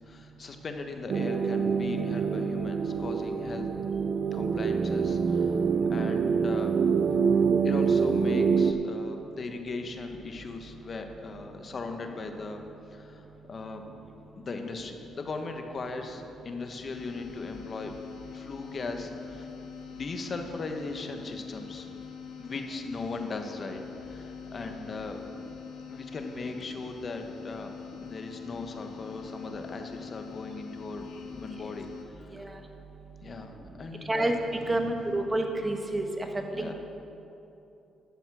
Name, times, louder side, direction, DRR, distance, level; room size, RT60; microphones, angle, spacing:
voice 1, 0.1-3.7 4.3-5.6 5.9-6.8 7.6-12.6 12.9-13.8 14.4-17.9 18.3-19.5 19.9-21.9 22.4-25.2 25.9-27.7 28.0-31.1 31.3-32.5 33.2-34.3 36.5-36.7, left 3 dB, 40° left, 5 dB, 1.2 m, -38 dB
sound 1, 1.1-8.7, right 6 dB, 55° right, 0.6 m, -26 dB
sound 2, 16.9-32.0, left 8 dB, 85° left, 1.3 m, -44 dB
voice 2, 34.7-36.3 36.6-36.7, right 1 dB, 20° right, 4 dB, 1.3 m, -28 dB
11.5 x 7.1 x 6.2 m, 2.8 s
cardioid pair, 90°, 0 cm